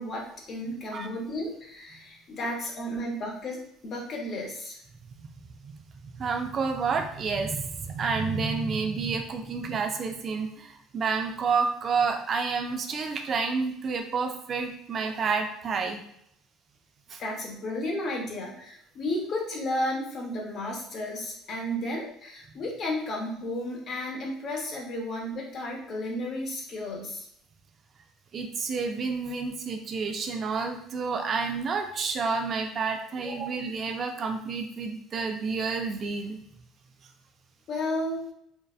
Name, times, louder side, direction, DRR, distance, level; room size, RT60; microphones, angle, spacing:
voice 1, 0.0-4.8 17.2-27.3 33.2-33.4 37.7-38.3, left 1 dB, 40° left, 0 dB, 0.7 m, -33 dB
voice 2, 6.2-16.0 17.1-17.2 28.3-36.4, right 5 dB, 35° right, 4 dB, 0.3 m, -29 dB
2.6 x 2.1 x 2.3 m, 0.70 s
cardioid pair, 135°, 0 cm